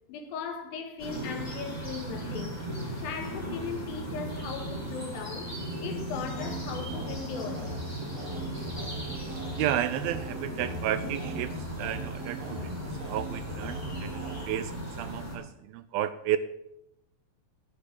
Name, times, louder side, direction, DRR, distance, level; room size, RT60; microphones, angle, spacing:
voice 1, 0.1-2.6 3.0-5.6 5.8-7.7, left 6 dB, 70° left, 3.0 m, -38 dB
sound 1, 1.0-15.4, right 1 dB, 5° left, 4.0 m, -37 dB
sound 2, 6.1-14.4, right 1 dB, 45° right, 2.8 m, -39 dB
voice 2, 9.1-12.8 13.0-16.4, right 12 dB, 80° right, 2.3 m, -32 dB
12.0 x 7.2 x 8.4 m
omnidirectional pair, 4.5 m